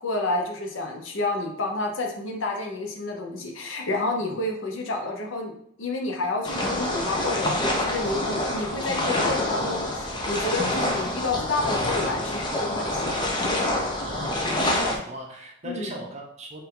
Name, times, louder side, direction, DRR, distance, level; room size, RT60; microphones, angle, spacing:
voice 1, 0.0-5.5 5.8-13.2 15.6-15.9, left 2 dB, 65° left, 2 dB, 0.7 m, -30 dB
sound 1, 6.4-15.0, left 1 dB, 20° left, 0.6 m, -26 dB
voice 2, 14.0-16.6, right 2 dB, 35° right, 0 dB, 0.8 m, -37 dB
4.3 x 2.6 x 3.7 m, 0.72 s
head